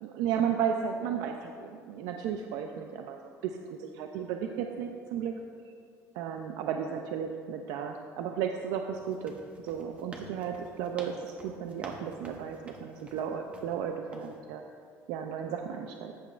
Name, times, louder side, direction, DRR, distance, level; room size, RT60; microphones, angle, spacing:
voice 1, 0.0-5.3 6.1-9.3 9.6-14.6 15.1-16.1, right 8 dB, 75° right, 4 dB, 0.5 m, -34 dB
sound 1, 8.9-13.7 14.1-14.4, right 2 dB, 20° right, 0.8 m, -48 dB
13.0 x 8.2 x 2.4 m, 2.3 s
cardioid pair, 175°, 7 cm